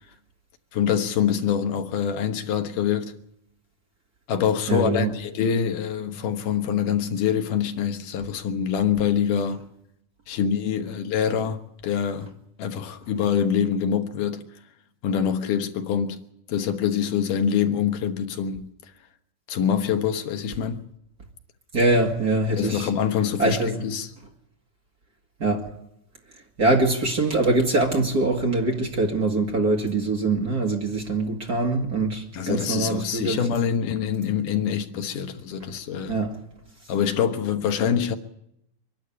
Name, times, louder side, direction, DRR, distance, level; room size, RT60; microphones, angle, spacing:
voice 1, 0.7-3.1 4.3-9.7 10.3-12.3 12.6-14.5 15.0-16.2 16.5-18.7 19.5-20.8 22.6-24.1 32.3-36.2 36.9-38.2, left 8 dB, 90° left, 2.9 m, -25 dB
voice 2, 4.7-5.1 21.7-22.9 23.4-23.8 25.4-25.7 26.6-33.5 36.1-36.4, right 2 dB, 35° right, 2.0 m, -23 dB
24.0 x 12.0 x 10.0 m
omnidirectional pair, 3.6 m